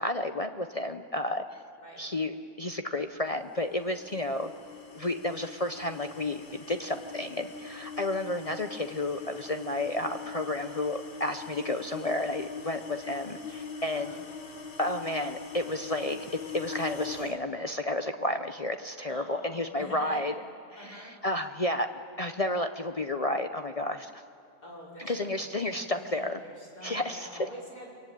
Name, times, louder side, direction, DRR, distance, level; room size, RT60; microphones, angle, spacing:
voice 1, 0.0-1.4 2.0-4.5 4.9-14.2 14.8-20.3 20.7-21.9 22.2-24.2 25.0-26.4 26.8-27.3, left 1 dB, 55° left, 7 dB, 0.4 m, -31 dB
sound 1, 3.5-17.4, left 4 dB, 35° left, 1.5 m, -42 dB
voice 2, 19.1-20.2 20.8-21.1 24.6-27.9, equal, 70° left, -4 dB, 6.3 m, -46 dB
24.5 x 23.0 x 9.2 m, 2.5 s
omnidirectional pair, 1.8 m